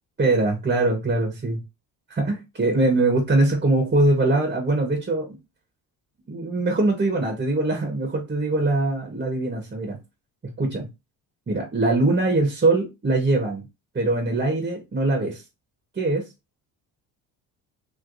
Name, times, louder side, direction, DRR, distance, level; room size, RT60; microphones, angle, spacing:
voice 1, 0.2-1.6 2.1-5.4 6.3-10.0 10.6-10.9 11.5-13.6 13.9-15.4 15.9-16.2, right 2 dB, 25° right, 1.2 m, -22 dB
3.1 x 3.0 x 2.6 m
supercardioid pair, 75°, 42 cm